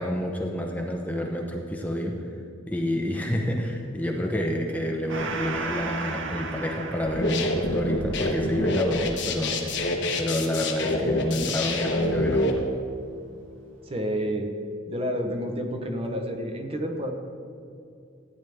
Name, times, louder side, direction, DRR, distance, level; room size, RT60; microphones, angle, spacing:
voice 1, 0.0-2.3 2.7-9.6 10.2-12.6, left 1 dB, 10° left, 1 dB, 0.7 m, -28 dB
Gong, 5.1-12.1, right 3 dB, 70° right, 0.8 m, -37 dB
sound 1, 7.0-12.5, left 1 dB, 60° left, 1.1 m, -27 dB
voice 2, 9.5-9.8 13.9-14.6 14.9-17.1, equal, 30° right, 4 dB, 0.9 m, -30 dB
14.0 x 9.3 x 3.5 m, 2.5 s
head